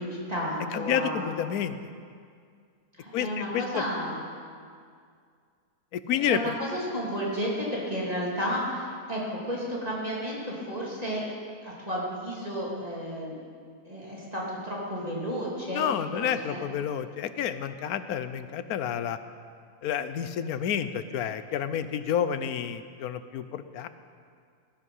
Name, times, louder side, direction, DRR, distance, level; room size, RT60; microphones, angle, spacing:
voice 1, 0.0-1.3 3.0-4.2 6.1-11.2 11.6-13.3 13.9-15.9 16.1-16.6, equal, 25° right, -5 dB, 2.9 m, -32 dB
voice 2, 0.7-1.7 3.1-3.8 5.9-6.5 15.7-19.2 19.8-23.9, left 9 dB, 75° left, 11 dB, 1.2 m, -29 dB
18.5 x 11.5 x 5.5 m, 2.2 s
omnidirectional pair, 1.6 m